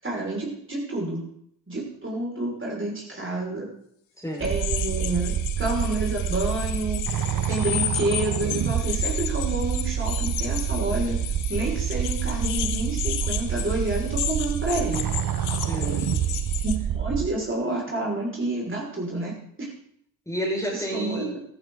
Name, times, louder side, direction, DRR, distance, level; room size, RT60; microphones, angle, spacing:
voice 1, 0.0-1.2 1.7-3.7 4.4-7.0 7.5-11.2 11.5-15.0 16.6-19.3 20.7-21.4, right 2 dB, 25° right, -3 dB, 6.1 m, -29 dB
voice 2, 4.2-4.5 15.6-16.2 20.3-21.4, equal, 5° left, -2 dB, 6.4 m, -31 dB
sound 1, 4.4-16.8, left 12 dB, 70° left, 1.3 m, -33 dB
sound 2, 4.4-17.3, right 9 dB, 40° right, 1.2 m, -27 dB
14.5 x 14.0 x 4.1 m, 0.69 s
hypercardioid pair, 50°, 49 cm